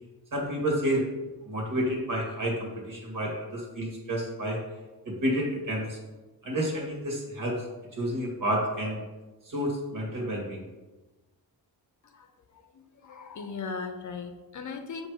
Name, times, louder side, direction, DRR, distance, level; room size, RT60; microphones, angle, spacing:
voice 1, 0.3-1.1 1.5-4.6 5.1-6.0 6.4-7.6 7.9-9.0 9.4-10.6, equal, 55° right, -2 dB, 2.0 m, -30 dB
voice 2, 12.5-15.1, left 5 dB, 50° left, 6 dB, 0.7 m, -38 dB
7.1 x 3.3 x 4.8 m, 1.1 s
wide cardioid pair, 135°, 39 cm